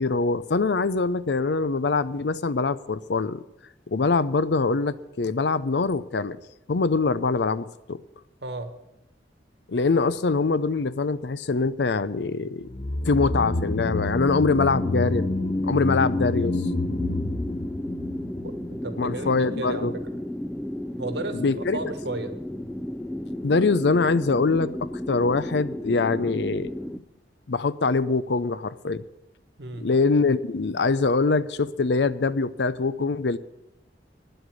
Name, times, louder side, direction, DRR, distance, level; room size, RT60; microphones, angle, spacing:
voice 1, 0.0-3.4 3.9-6.4 6.7-8.0 9.7-12.7 13.0-15.3 15.6-16.6 19.0-19.9 21.3-21.8 23.4-26.7 27.5-29.0 29.8-33.4, left 4 dB, 70° left, 16 dB, 0.6 m, -23 dB
voice 2, 8.4-8.7 18.8-20.2 21.0-22.4 29.6-29.9, right 2 dB, 65° right, 9 dB, 1.4 m, -34 dB
sound 1, 12.7-19.1 19.3-19.4, left 2 dB, 40° left, 0.9 m, -28 dB
sound 2, 14.8-27.0, left 1 dB, 5° left, 0.4 m, -34 dB
10.0 x 7.9 x 9.4 m, 0.88 s
head